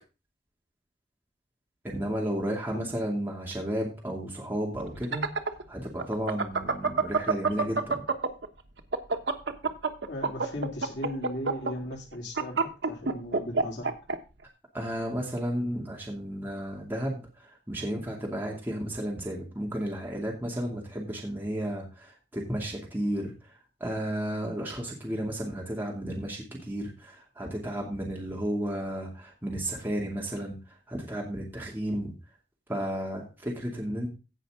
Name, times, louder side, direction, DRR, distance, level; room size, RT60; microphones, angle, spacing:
voice 1, 1.8-5.3 5.7-8.0 14.7-32.1 32.7-34.1, equal, 10° right, -2 dB, 2.5 m, -33 dB
sound 1, 4.9-8.5 8.8-14.2, right 4 dB, 75° right, 1.1 m, -27 dB
voice 2, 10.1-13.9, left 1 dB, 80° left, -1 dB, 3.5 m, -37 dB
16.5 x 5.7 x 3.7 m, 0.30 s
head